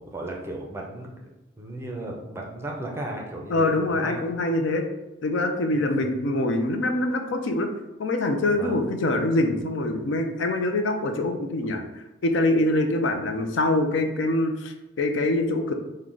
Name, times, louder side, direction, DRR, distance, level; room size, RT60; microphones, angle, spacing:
voice 1, 0.0-4.2 5.7-6.1 8.5-8.8, right 1 dB, 15° right, -1 dB, 0.5 m, -35 dB
voice 2, 3.5-4.9 5.2-7.7 8.0-15.7, left 2 dB, 65° left, 5 dB, 0.4 m, -24 dB
4.7 x 2.2 x 3.8 m, 0.98 s
head